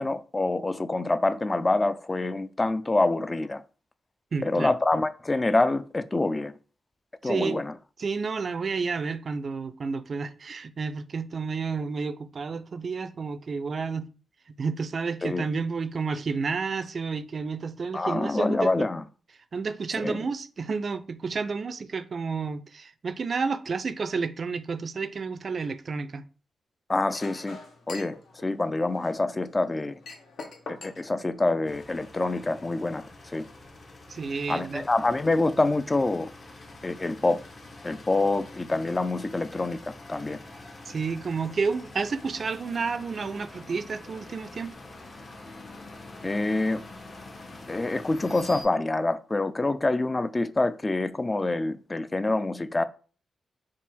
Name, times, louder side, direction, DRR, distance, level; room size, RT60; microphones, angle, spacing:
voice 1, 0.0-3.6 4.4-6.5 7.2-7.7 15.2-15.5 17.9-19.0 20.0-20.3 26.9-27.6 27.9-28.2 28.4-30.0 30.7-33.1 33.3-33.5 34.5-36.3 36.8-37.4 37.8-39.8 40.1-40.4 46.2-46.8 47.7-52.8, left 2 dB, 25° left, 0.3 m, -26 dB
voice 2, 4.3-4.7 7.2-7.6 8.0-14.1 14.6-18.7 19.5-26.2 34.1-34.8 40.9-44.7, right 4 dB, 50° right, 0.4 m, -30 dB
Chink clink, 27.1-32.1, left 3 dB, 70° left, 0.8 m, -45 dB
sound 1, 31.7-48.6, left 2 dB, 50° left, 1.0 m, -46 dB
3.6 x 2.4 x 4.2 m
cardioid pair, 75°, 0 cm